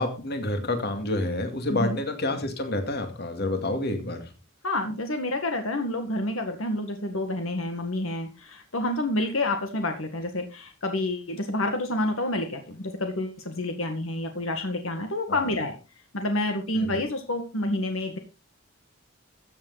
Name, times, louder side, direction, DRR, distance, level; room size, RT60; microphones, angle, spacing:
voice 1, 0.0-4.3 15.3-15.6 16.7-17.0, left 2 dB, 50° left, 6 dB, 2.3 m, -29 dB
voice 2, 4.6-15.7 16.1-18.2, left 1 dB, 75° left, 5 dB, 1.8 m, -28 dB
14.5 x 7.6 x 4.1 m, 0.29 s
head